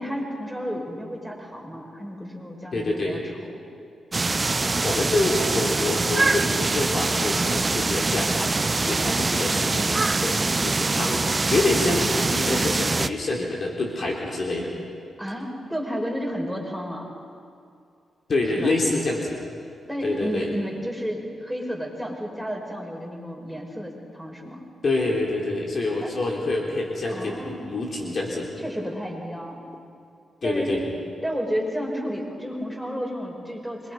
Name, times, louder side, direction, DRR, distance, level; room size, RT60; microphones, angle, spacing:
voice 1, 0.0-3.5 15.2-17.0 18.6-18.7 19.9-24.6 26.0-26.1 27.1-27.8 28.6-29.6 30.4-30.8 31.2-33.9, equal, ahead, -1 dB, 6.3 m, -32 dB
voice 2, 2.7-3.2 4.6-8.5 8.8-14.7 18.3-19.4 20.0-20.5 24.8-28.5 30.4-30.8, left 2 dB, 55° left, -2 dB, 3.5 m, -26 dB
sound 1, 4.1-13.1, right 3 dB, 35° right, 0.7 m, -24 dB
25.0 x 23.0 x 5.5 m, 2.4 s
supercardioid pair, 50°, 0 cm